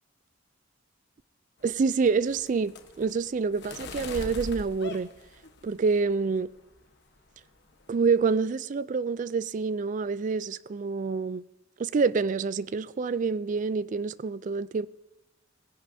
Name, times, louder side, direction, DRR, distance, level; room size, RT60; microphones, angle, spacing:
sound 1, 1.6-6.0 6.4-6.9 7.2-7.5 7.7-8.4, left 2 dB, 55° left, 1.1 m, -42 dB
voice 1, 1.6-2.7 3.0-5.1 5.6-6.5 7.9-11.4 11.8-14.9, right 4 dB, 40° right, 0.3 m, -27 dB
19.0 x 10.5 x 2.7 m
head